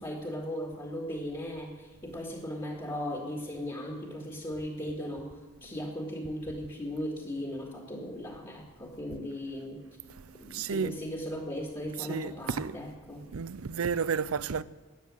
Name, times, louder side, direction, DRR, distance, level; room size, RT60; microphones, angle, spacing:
voice 1, 0.0-5.3 5.6-9.8 10.4-13.2, equal, 20° left, 2.1 m, -37 dB
voice 2, 10.5-11.0 12.0-12.9 13.3-14.6, right 6 dB, 85° right, 0.6 m, -32 dB
14.0 x 9.5 x 9.7 m
head